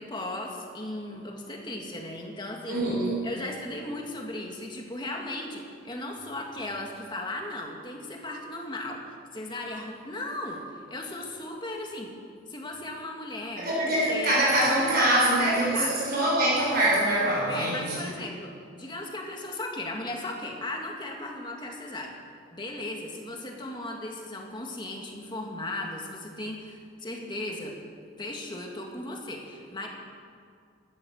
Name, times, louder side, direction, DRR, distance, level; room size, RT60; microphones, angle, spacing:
voice 1, 0.0-2.8 3.2-9.0 9.3-12.1 12.5-13.7 14.1-14.4 15.1-15.9 17.5-18.5 18.8-22.1 22.5-27.8 28.2-29.9, left 1 dB, 25° left, 1 dB, 2.1 m, -36 dB
voice 2, 2.7-3.2 13.6-18.1, right 1 dB, 50° right, -6 dB, 5.5 m, -24 dB
16.5 x 13.5 x 6.5 m, 2.2 s
head